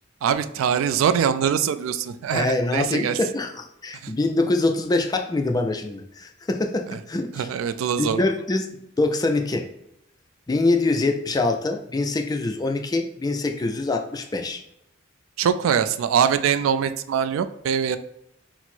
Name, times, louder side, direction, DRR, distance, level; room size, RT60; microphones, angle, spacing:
voice 1, 0.2-3.2 4.0-4.1 6.9-7.0 7.3-8.2 15.4-18.0, right 8 dB, 85° right, 11 dB, 0.3 m, -23 dB
voice 2, 2.3-7.5 8.0-8.7 9.0-9.7 10.5-14.6, left 2 dB, 20° left, 5 dB, 0.3 m, -24 dB
4.4 x 2.0 x 4.2 m, 0.80 s
head